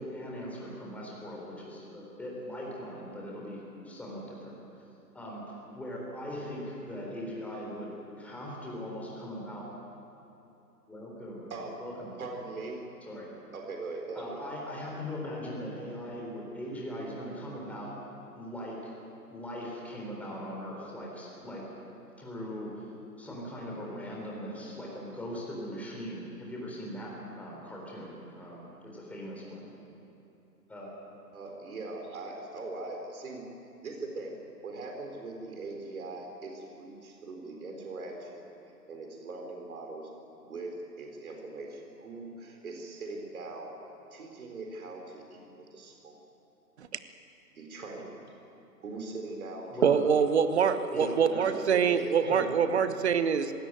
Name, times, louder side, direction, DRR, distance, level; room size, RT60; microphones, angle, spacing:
voice 1, 0.0-4.5 5.1-7.9 8.2-9.7 10.9-11.5 11.8-12.1 13.1-13.3 14.1-17.9 18.3-18.9 19.3-21.6 22.2-22.8 23.2-29.7 30.7-30.9 49.7-50.0 50.9-51.5 52.2-52.5, equal, 5° left, -3 dB, 3.7 m, -40 dB
voice 2, 12.2-12.8 13.5-14.4 31.3-33.4 33.8-40.1 40.4-43.8 44.1-46.2 47.6-48.1 48.8-50.2 50.6-52.5, right 3 dB, 55° right, 2 dB, 4.0 m, -41 dB
voice 3, 49.8-53.5, right 7 dB, 40° right, 11 dB, 1.2 m, -25 dB
21.0 x 17.0 x 9.2 m, 2.9 s
figure-of-eight pair, 145°, 50 cm